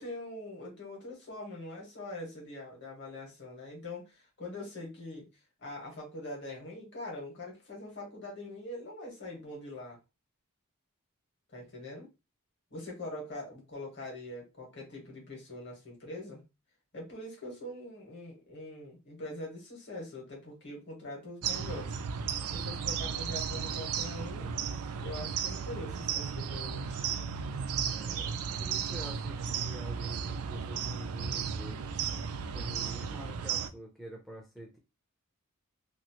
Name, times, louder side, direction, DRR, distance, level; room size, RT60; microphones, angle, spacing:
voice 1, 0.0-5.3 5.6-10.0 11.5-12.1 12.7-16.4 16.9-24.5 25.0-26.9, left 1 dB, 55° left, 1.5 m, -43 dB
sound 1, 21.4-33.7, right 7 dB, 75° right, 0.4 m, -35 dB
voice 2, 27.8-31.9 32.5-34.8, equal, ahead, 0.5 m, -47 dB
2.9 x 2.5 x 2.9 m
head